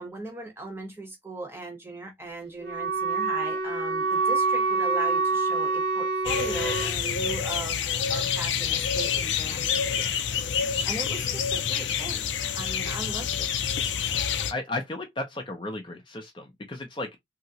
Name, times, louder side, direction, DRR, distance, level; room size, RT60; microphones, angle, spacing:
voice 1, 0.0-7.8 8.1-10.1 10.5-12.2 12.5-13.5, right 2 dB, 15° right, 0.8 m, -38 dB
Wind instrument woodwind instrument, 2.6-7.0, right 4 dB, 65° right, 0.6 m, -26 dB
sound 1, 6.2-14.5, left 7 dB, 90° left, 0.4 m, -28 dB
voice 2, 14.5-17.1, left 2 dB, 25° left, 0.5 m, -34 dB
2.9 x 2.8 x 2.7 m
head